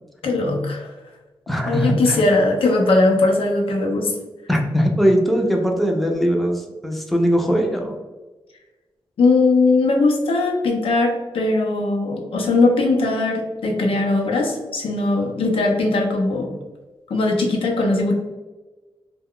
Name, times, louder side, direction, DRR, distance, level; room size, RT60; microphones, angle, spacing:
voice 1, 0.2-0.9 1.7-4.1 9.2-16.5 17.1-18.1, left 2 dB, 85° left, 1 dB, 0.6 m, -19 dB
voice 2, 1.5-2.4 4.5-8.0, equal, ahead, 1 dB, 0.4 m, -20 dB
2.2 x 2.2 x 3.6 m, 1.2 s
wide cardioid pair, 95°, 9 cm